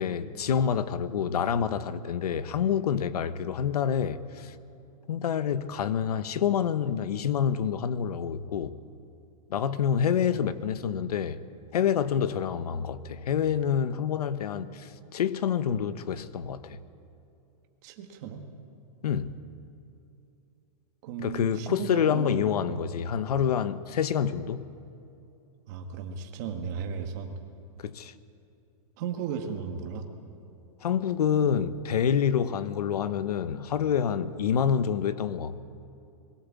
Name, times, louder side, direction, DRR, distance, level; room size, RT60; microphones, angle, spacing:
voice 1, 0.0-4.5 5.1-8.8 9.5-11.4 11.7-16.8 19.0-19.4 21.2-24.6 27.8-28.1 30.8-35.6, left 8 dB, 85° left, 1.1 m, -27 dB
voice 2, 17.8-18.5 21.0-22.9 25.7-27.4 29.0-30.0, right 6 dB, 30° right, 1.7 m, -35 dB
22.0 x 17.0 x 8.4 m
supercardioid pair, 180°, 19 cm